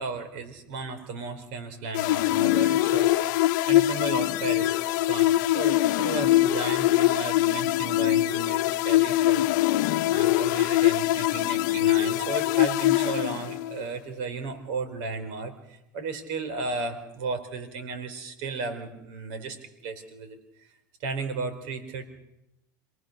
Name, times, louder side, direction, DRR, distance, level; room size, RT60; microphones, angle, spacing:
voice 1, 0.0-4.8 5.1-9.5 10.1-19.6 19.8-20.7 21.0-22.1, right 4 dB, 65° right, 9 dB, 4.2 m, -34 dB
sound 1, 1.9-13.8, left 15 dB, 70° left, 0.9 m, -23 dB
27.5 x 19.0 x 6.7 m, 0.87 s
hypercardioid pair, 100°, 10 cm